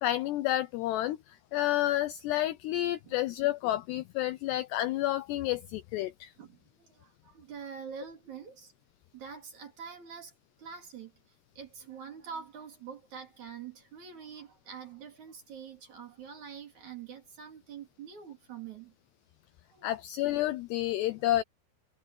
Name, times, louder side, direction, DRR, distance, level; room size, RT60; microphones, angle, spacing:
voice 1, 0.0-6.3 19.8-21.4, left 14 dB, 90° left, 2.3 m, -30 dB
voice 2, 6.4-8.7 9.1-10.3 10.6-11.1 11.6-18.9 19.7-19.9 21.1-21.4, right 7 dB, 40° right, 3.7 m, -45 dB
omnidirectional pair, 5.7 m